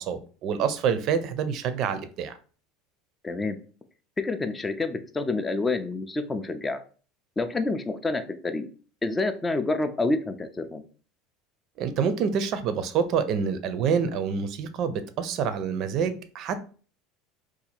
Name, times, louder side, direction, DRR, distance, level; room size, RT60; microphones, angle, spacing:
voice 1, 0.0-2.4 11.8-16.6, right 6 dB, 45° right, 11 dB, 0.4 m, -27 dB
voice 2, 3.2-3.6 4.2-6.8 7.4-8.7 9.0-10.8, left 3 dB, 15° left, 9 dB, 0.4 m, -28 dB
2.7 x 2.4 x 4.2 m, 0.40 s
supercardioid pair, 145°, 0 cm